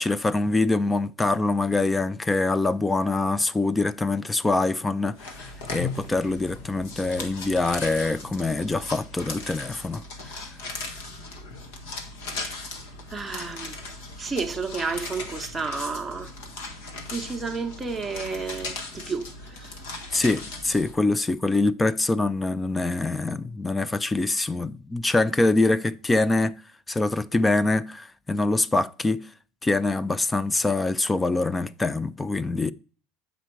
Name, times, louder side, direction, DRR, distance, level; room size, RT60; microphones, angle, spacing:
voice 1, 0.0-10.4 20.1-26.5 26.9-29.3 29.6-32.7, left 2 dB, 10° left, 0.3 m, -24 dB
sound 1, 5.2-20.9, left 3 dB, 85° left, 1.4 m, -38 dB
voice 2, 13.1-13.8 14.2-16.3 17.1-19.7, right 4 dB, 10° right, 0.8 m, -31 dB
7.8 x 5.1 x 4.5 m
supercardioid pair, 140°, 0 cm